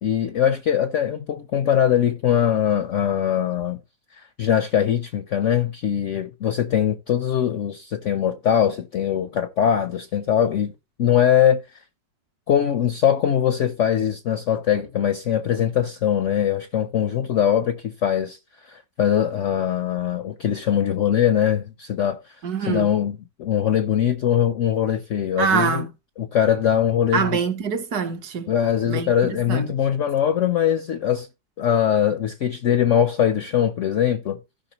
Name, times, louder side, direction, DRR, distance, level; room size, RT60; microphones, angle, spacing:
voice 1, 0.0-3.8 4.1-10.7 11.0-11.6 12.5-22.4 22.6-25.8 26.2-27.4 28.5-31.3 31.6-34.4, left 9 dB, 70° left, 0.7 m, -22 dB
voice 2, 22.4-22.9 25.4-25.9 27.1-28.5 28.9-29.1 29.5-29.7, right 6 dB, 60° right, 1.4 m, -24 dB
16.0 x 5.6 x 2.9 m
omnidirectional pair, 2.0 m